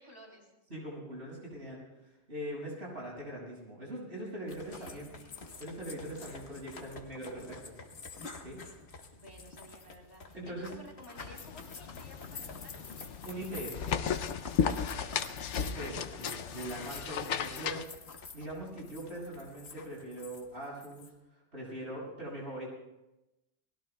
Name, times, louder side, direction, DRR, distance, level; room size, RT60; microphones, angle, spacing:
voice 1, 0.0-0.5 4.7-5.4 9.1-12.8 14.8-15.4, equal, 40° left, -2 dB, 3.4 m, -54 dB
voice 2, 0.7-5.1 5.6-7.8 8.4-8.6 10.3-10.7 13.2-13.9 15.6-17.9 18.3-22.7, right 1 dB, 70° right, -4 dB, 6.9 m, -42 dB
sound 1, 4.5-21.1, left 4 dB, 65° left, 1.6 m, -48 dB
sound 2, 11.2-17.9, left 7 dB, 85° left, 1.0 m, -35 dB
29.5 x 20.0 x 2.3 m, 0.99 s
omnidirectional pair, 1.2 m